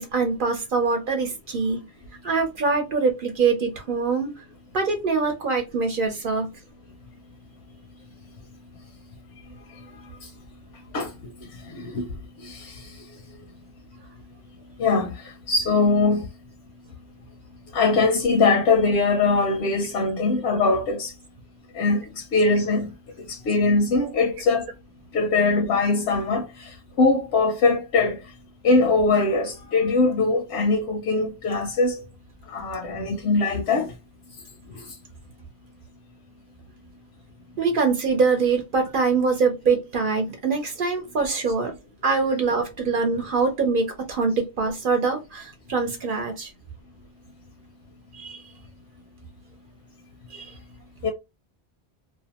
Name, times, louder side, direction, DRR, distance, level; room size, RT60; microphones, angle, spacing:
voice 1, 0.0-1.8 2.2-4.3 4.7-6.5 37.6-41.7 42.0-46.5 48.1-48.4 50.3-50.5, right 4 dB, 60° right, 0.8 m, -24 dB
voice 2, 10.9-11.3 11.7-12.1 12.4-12.8 14.8-16.3 17.7-21.1 21.7-22.9 23.3-24.7 25.1-28.2 28.6-32.0 32.5-33.9 34.7-34.9 51.0-51.1, left 3 dB, 90° left, 0.9 m, -22 dB
2.6 x 2.1 x 2.8 m
omnidirectional pair, 1.1 m